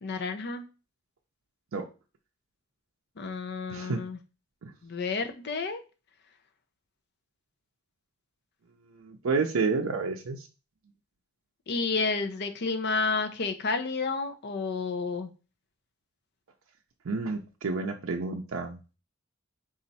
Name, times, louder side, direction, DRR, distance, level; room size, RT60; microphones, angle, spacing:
voice 1, 0.0-0.6 3.2-4.2 4.8-5.8 11.7-15.3, left 4 dB, 55° left, 7 dB, 0.6 m, -30 dB
voice 2, 9.0-10.5 17.1-18.8, right 4 dB, 70° right, 2 dB, 0.5 m, -30 dB
4.1 x 2.5 x 4.0 m, 0.32 s
head